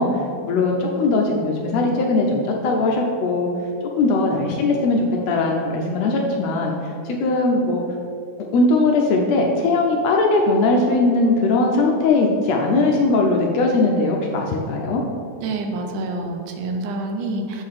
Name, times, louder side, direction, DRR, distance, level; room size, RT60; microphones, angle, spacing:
voice 1, 0.0-3.5 4.0-6.7 7.0-7.8 8.5-15.0, left 2 dB, 75° left, 1 dB, 1.6 m, -19 dB
voice 2, 15.4-17.6, right 2 dB, 85° right, 3 dB, 2.3 m, -27 dB
6.9 x 3.8 x 6.4 m, 2.4 s
omnidirectional pair, 3.6 m